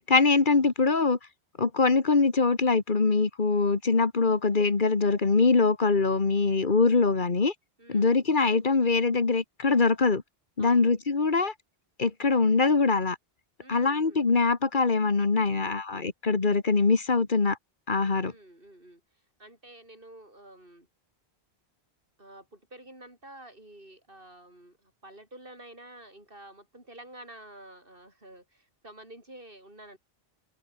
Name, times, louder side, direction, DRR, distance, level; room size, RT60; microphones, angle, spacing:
voice 1, 0.1-1.2 1.6-7.5 7.9-10.2 10.6-11.5 12.0-13.2 13.7-17.6 17.9-18.3, left 4 dB, 50° left, 1.9 m, -23 dB
voice 2, 7.8-8.2 10.6-10.9 13.6-14.3 18.2-19.0 19.4-20.9 22.2-30.0, right 1 dB, 55° right, 8.2 m, -49 dB
open air
omnidirectional pair, 1.1 m